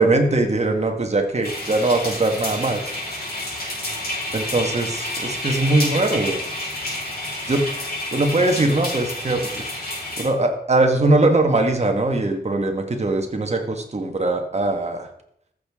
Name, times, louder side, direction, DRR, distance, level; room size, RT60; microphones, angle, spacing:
voice 1, 0.0-2.8 4.3-6.4 7.5-7.6 8.1-9.5 10.2-15.1, right 2 dB, 45° right, 4 dB, 1.5 m, -21 dB
sound 1, 1.4-10.2, left 1 dB, 70° left, 3.6 m, -29 dB
14.0 x 6.7 x 3.6 m, 0.73 s
wide cardioid pair, 95°, 16 cm